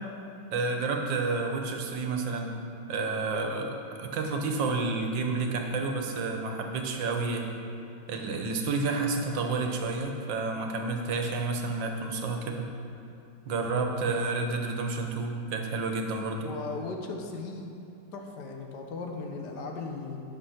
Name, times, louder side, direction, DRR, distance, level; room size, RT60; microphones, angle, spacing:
voice 1, 0.5-2.5 2.9-7.5 8.1-12.7 13.5-16.5, right 3 dB, 85° right, 3 dB, 1.7 m, -30 dB
voice 2, 16.4-17.7 18.1-20.2, left 3 dB, 65° left, 2 dB, 1.5 m, -37 dB
10.5 x 6.6 x 5.7 m, 2.6 s
omnidirectional pair, 1.9 m